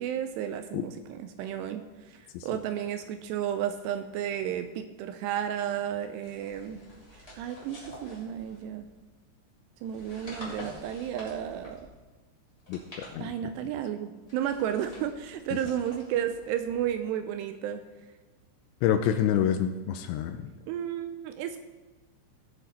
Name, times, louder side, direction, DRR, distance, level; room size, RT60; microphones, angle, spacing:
voice 1, 0.0-6.8 7.1-8.9 9.8-11.9 13.2-17.8 20.7-21.6, right 10 dB, 85° right, 8 dB, 2.5 m, -33 dB
sound 1, 6.2-9.0 9.8-12.0 12.5-13.7 14.2-17.1, left 1 dB, 10° left, 2.3 m, -48 dB
voice 2, 18.8-20.5, left 9 dB, 80° left, 7 dB, 2.8 m, -27 dB
18.5 x 6.7 x 4.3 m, 1.2 s
omnidirectional pair, 5.3 m